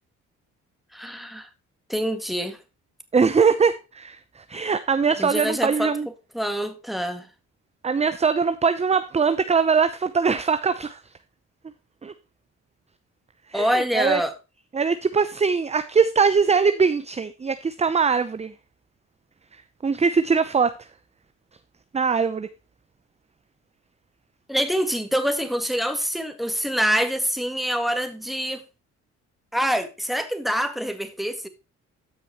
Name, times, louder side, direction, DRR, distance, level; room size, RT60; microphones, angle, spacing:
voice 1, 0.9-1.5 1.9-2.6 5.2-6.0 6.3-7.3 13.5-14.3 24.5-28.6 29.5-31.5, equal, ahead, 2.0 m, -25 dB
voice 2, 3.1-6.1 7.8-11.0 12.0-12.1 13.5-14.2 14.7-18.5 19.8-20.7 21.9-22.5, right 5 dB, 20° right, 0.7 m, -21 dB
13.0 x 6.2 x 3.0 m
cardioid pair, 90°, 30 cm